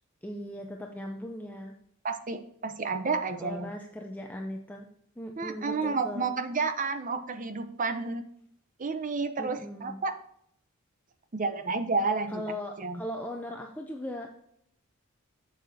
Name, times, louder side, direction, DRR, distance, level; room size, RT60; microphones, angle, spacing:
voice 1, 0.2-1.7 3.4-4.9 5.2-6.3 9.4-10.0 12.3-14.3, equal, 10° left, 2 dB, 0.5 m, -38 dB
voice 2, 2.0-3.7 5.4-8.2 8.8-10.1 11.3-12.4 12.8-13.0, right 4 dB, 40° right, 8 dB, 0.7 m, -30 dB
7.6 x 6.6 x 2.7 m, 0.71 s
head